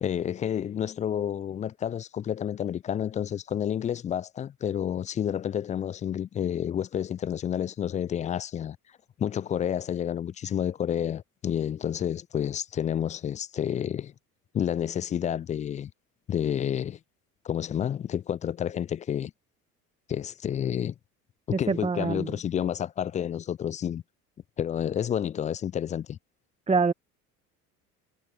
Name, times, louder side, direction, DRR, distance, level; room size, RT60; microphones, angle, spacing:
voice 1, 0.0-8.8 9.2-14.1 14.5-15.9 16.3-17.0 17.4-19.3 20.1-20.9 21.6-24.0 24.6-26.2, left 9 dB, 20° left, 0.3 m, -30 dB
voice 2, 21.7-22.3 26.7-26.9, right 4 dB, 15° right, 1.4 m, -25 dB
figure-of-eight pair, 65°, 46 cm